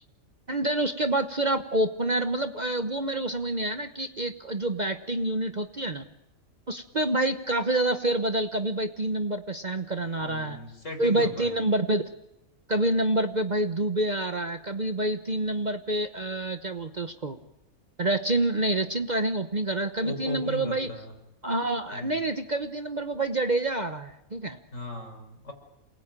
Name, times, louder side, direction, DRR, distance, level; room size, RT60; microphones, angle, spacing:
voice 1, 0.5-6.0 6.7-10.6 11.0-12.1 12.7-17.4 18.0-20.9 21.4-24.6, right 2 dB, 35° right, 8 dB, 1.1 m, -27 dB
voice 2, 10.0-11.6 20.0-21.1 21.9-22.3 24.7-25.5, left 2 dB, 60° left, 3 dB, 5.7 m, -37 dB
28.0 x 20.5 x 9.0 m, 0.91 s
omnidirectional pair, 1.4 m